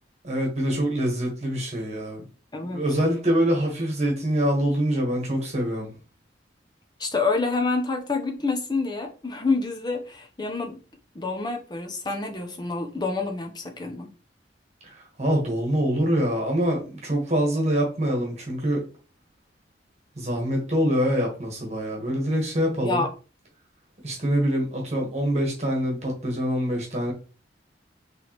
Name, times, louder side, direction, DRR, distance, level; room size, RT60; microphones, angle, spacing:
voice 1, 0.2-2.2 2.7-5.9 14.8-18.8 20.2-23.0 24.0-27.1, equal, 40° right, 1.3 m, -25 dB
voice 2, 2.5-2.8 7.0-10.8 11.1-14.1 22.8-23.1, left 3 dB, 25° left, 0.7 m, -27 dB
4.5 x 3.3 x 3.0 m
head